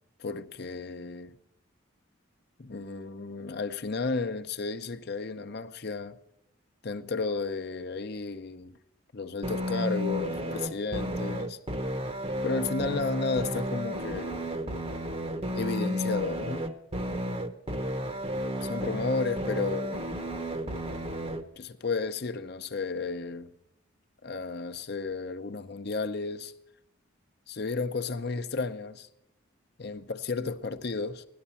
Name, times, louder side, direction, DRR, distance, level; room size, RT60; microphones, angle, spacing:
voice 1, 0.2-1.3 2.6-6.2 6.8-8.8 9.1-11.6 12.4-14.4 15.5-16.7 18.6-20.0 21.6-23.5 24.2-26.5 27.5-29.1 29.8-31.3, left 4 dB, 50° left, 0.7 m, -33 dB
sound 1, 9.4-21.4, equal, 25° right, 0.8 m, -32 dB
17.0 x 12.0 x 7.0 m
head